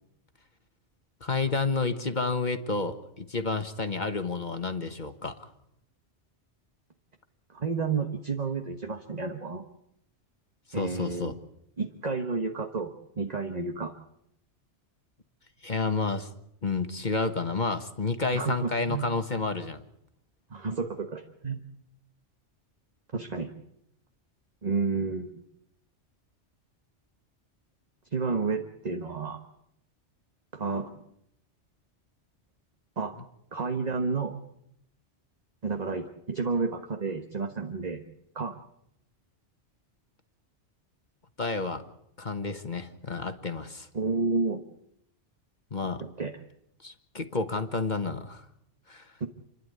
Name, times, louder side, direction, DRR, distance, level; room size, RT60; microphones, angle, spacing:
voice 1, 1.2-5.5 10.7-11.4 15.6-16.3 16.6-19.8 41.4-41.8 42.2-43.9 45.7-46.0 46.8-48.5 48.9-49.1, left 3 dB, 40° left, 8 dB, 1.5 m, -30 dB
voice 2, 7.5-9.7 10.7-11.3 11.8-13.9 18.3-19.1 20.5-21.6 23.1-23.6 24.6-25.4 28.1-29.4 30.5-30.9 33.0-33.1 33.5-34.4 35.6-38.0 38.3-38.6 43.9-44.6 46.2-46.3 49.2-49.3, right 4 dB, 35° right, 5 dB, 1.4 m, -31 dB
29.5 x 11.5 x 9.6 m, 0.77 s
omnidirectional pair, 1.2 m